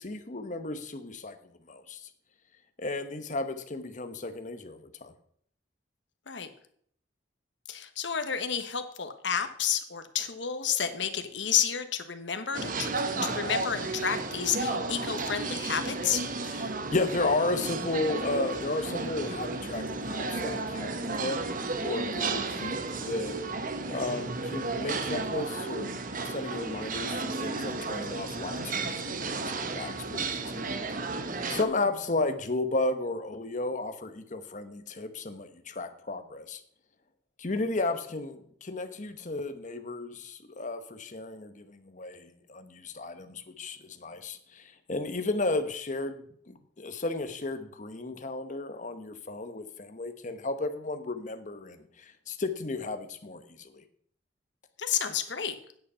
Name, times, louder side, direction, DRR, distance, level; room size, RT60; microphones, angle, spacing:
voice 1, 0.0-1.4 1.7-2.1 2.8-5.1 16.4-21.4 21.8-23.4 23.9-30.7 30.9-36.6 37.4-53.8, left 2 dB, 45° left, 8 dB, 1.0 m, -34 dB
voice 2, 7.7-12.9 13.2-16.2 54.8-55.6, left 8 dB, 80° left, 8 dB, 1.2 m, -30 dB
sound 1, 12.5-31.6, right 3 dB, 45° right, 1.0 m, -33 dB
9.3 x 8.3 x 5.6 m, 0.62 s
head